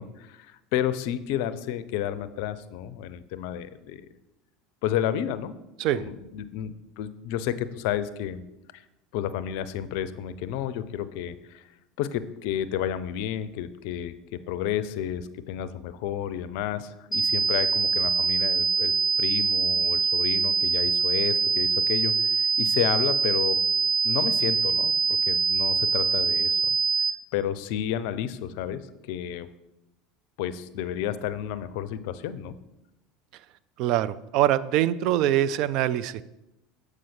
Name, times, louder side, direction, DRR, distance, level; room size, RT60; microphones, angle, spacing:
voice 1, 0.0-4.0 4.8-5.5 5.9-8.4 9.1-11.6 12.0-18.9 19.2-23.6 24.0-26.6 27.3-28.8 29.1-29.5 30.4-32.5, left 10 dB, 65° left, 14 dB, 0.4 m, -31 dB
sound 1, 17.1-27.1, right 5 dB, ahead, 0.5 m, -24 dB
voice 2, 33.8-36.2, right 12 dB, 55° right, 16 dB, 0.3 m, -24 dB
7.6 x 4.8 x 4.3 m, 0.94 s
hypercardioid pair, 75°, 0 cm